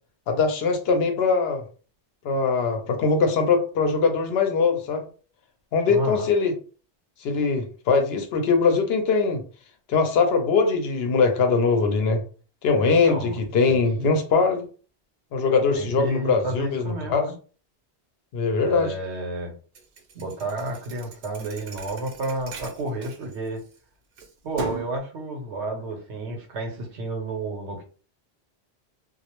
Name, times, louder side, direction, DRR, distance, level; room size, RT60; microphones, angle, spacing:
voice 1, 0.3-1.6 2.2-5.1 5.7-6.5 7.2-9.4 9.9-12.2 12.6-14.7 15.3-17.3 18.3-19.0, left 4 dB, 70° left, 5 dB, 0.8 m, -22 dB
voice 2, 5.9-6.3 12.8-14.2 15.7-17.3 18.6-19.5 20.1-23.6 24.4-27.8, right 2 dB, 85° right, 2 dB, 1.0 m, -31 dB
Thump thud, 19.7-23.8 24.2-25.0, right 3 dB, 60° right, 0.7 m, -38 dB
2.3 x 2.0 x 2.9 m, 0.39 s
omnidirectional pair, 1.1 m